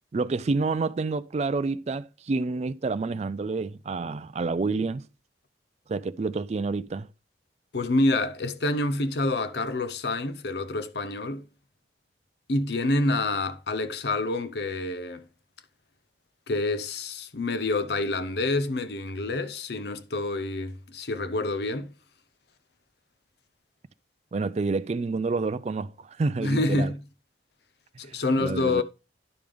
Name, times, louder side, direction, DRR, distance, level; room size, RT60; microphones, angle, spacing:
voice 1, 0.1-5.1 5.9-7.1 24.3-26.9 28.1-28.8, right 3 dB, 35° right, 0.3 m, -28 dB
voice 2, 7.7-11.5 12.5-15.2 16.5-21.9 26.4-27.0 28.0-28.8, left 2 dB, 60° left, 0.7 m, -27 dB
10.5 x 5.1 x 3.5 m
head